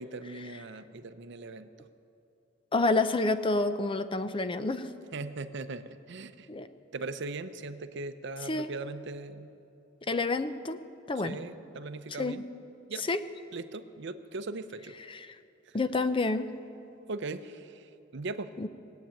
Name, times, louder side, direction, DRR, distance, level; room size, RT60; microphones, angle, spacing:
voice 1, 0.0-1.9 5.1-6.5 6.9-9.6 11.1-12.4 12.9-13.1 13.5-15.0 15.7-15.8 17.1-18.5, right 3 dB, 65° right, 11 dB, 0.7 m, -39 dB
voice 2, 2.7-4.9 6.5-6.7 8.5-8.7 10.1-10.8 11.1-11.4 12.2-12.4 13.1-13.2 15.1-15.2 15.7-16.5 18.6-18.7, left 3 dB, 25° left, 11 dB, 0.6 m, -28 dB
19.0 x 8.3 x 8.9 m, 2.8 s
head